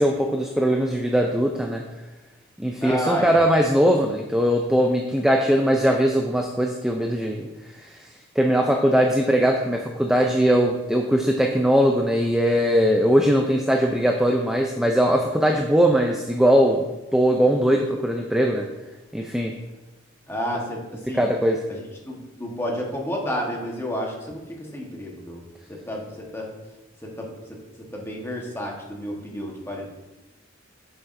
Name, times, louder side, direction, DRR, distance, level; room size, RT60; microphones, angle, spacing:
voice 1, 0.0-1.8 2.6-7.5 7.7-8.0 8.4-18.7 19.1-19.5 21.1-21.6, equal, 5° right, 2 dB, 0.4 m, -20 dB
voice 2, 2.8-3.4 20.3-21.3 22.1-25.4 25.7-26.5 27.0-27.6 27.9-29.9, equal, 10° left, -1 dB, 1.2 m, -30 dB
8.3 x 6.7 x 2.6 m, 1.1 s
head